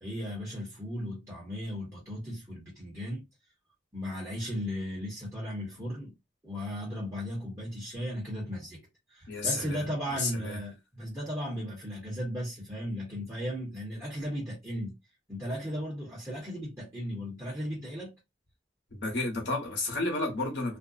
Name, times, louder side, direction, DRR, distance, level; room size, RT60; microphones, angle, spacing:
voice 1, 0.0-3.2 3.9-6.1 6.4-8.8 9.1-14.9 15.3-18.1, equal, 15° right, 1.0 m, -36 dB
voice 2, 9.3-9.8 10.2-10.6 18.9-20.8, left 2 dB, 70° left, 1.0 m, -31 dB
2.5 x 2.1 x 2.4 m
head